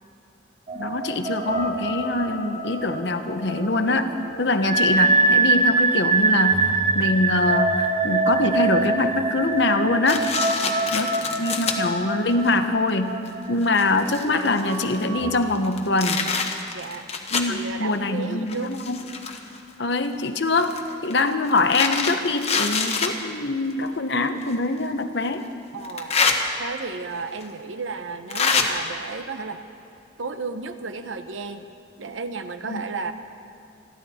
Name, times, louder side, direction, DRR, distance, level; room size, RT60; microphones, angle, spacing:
voice 1, 0.7-4.1 4.4-10.3 10.9-11.1 11.4-16.3 17.3-19.0 19.8-25.5 32.6-32.8, left 2 dB, 65° left, 8 dB, 0.9 m, -24 dB
sound 1, 0.7-15.4, right 3 dB, 35° right, 1.1 m, -24 dB
voice 2, 4.3-4.6 10.4-11.6 13.4-13.6 16.7-17.1 17.4-18.7 25.7-26.1 26.6-29.6 30.2-31.7 32.0-33.1, right 4 dB, 90° right, 9 dB, 0.9 m, -34 dB
sound 2, 10.1-11.8 12.5-12.6 13.3-13.4 13.6-15.0 15.6-17.6 18.5-19.6 20.6-23.1 24.4-24.5 25.8-26.4 27.4-27.5 28.3-28.7, left 5 dB, 35° left, 1.1 m, -25 dB
28.0 x 11.5 x 4.3 m, 2.7 s
head